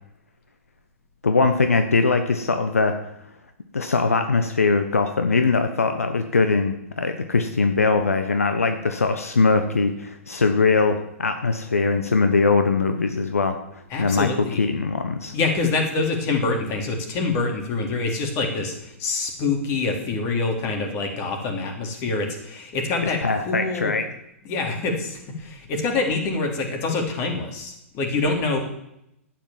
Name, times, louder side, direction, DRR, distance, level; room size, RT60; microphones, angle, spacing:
voice 1, 1.2-2.9 3.7-15.3 23.2-24.1, left 4 dB, 80° left, 7 dB, 1.1 m, -21 dB
voice 2, 13.9-14.6 15.3-23.2 23.5-24.0 24.5-28.6, left 3 dB, 35° left, 3 dB, 3.6 m, -25 dB
12.0 x 9.1 x 7.5 m, 0.80 s
figure-of-eight pair, 105°, 8 cm